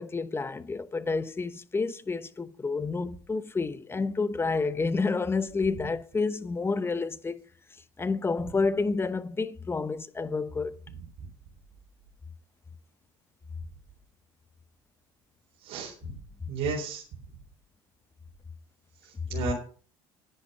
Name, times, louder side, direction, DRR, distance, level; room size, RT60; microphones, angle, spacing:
voice 1, 0.0-7.4 8.0-10.7, left 4 dB, 20° left, 1.0 m, -29 dB
voice 2, 15.6-16.1 16.5-17.0 19.0-19.5, right 4 dB, 60° right, 3.9 m, -33 dB
10.5 x 10.0 x 5.5 m
hypercardioid pair, 80°, 12 cm